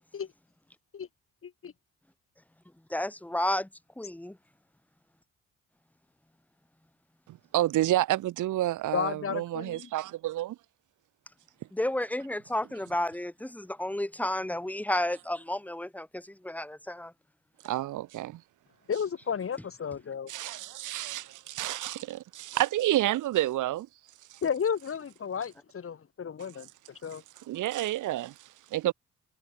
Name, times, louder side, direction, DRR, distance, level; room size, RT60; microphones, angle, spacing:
voice 1, 1.4-1.7 8.9-9.9 18.9-20.3 24.4-26.7 27.0-27.2, left 7 dB, 45° left, 3.7 m, -32 dB
voice 2, 2.9-3.7 4.0-4.4 11.7-17.1, left 1 dB, 5° left, 2.1 m, -32 dB
voice 3, 7.3-10.6 17.6-18.4 20.3-23.9 24.3-24.4 27.5-28.9, right 14 dB, 80° right, 2.0 m, -29 dB
cardioid pair, 90°, 30 cm